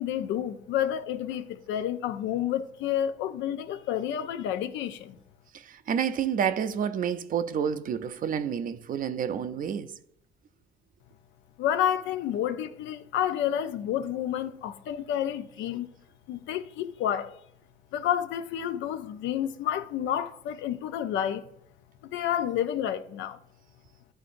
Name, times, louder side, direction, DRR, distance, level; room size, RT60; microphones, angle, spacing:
voice 1, 0.0-5.2 11.6-15.9 16.3-17.4 17.9-21.5 22.0-23.4, left 10 dB, 85° left, 0.5 m, -30 dB
voice 2, 5.5-9.9, right 8 dB, 45° right, 0.5 m, -29 dB
11.0 x 3.9 x 2.5 m
cardioid pair, 100°, 19 cm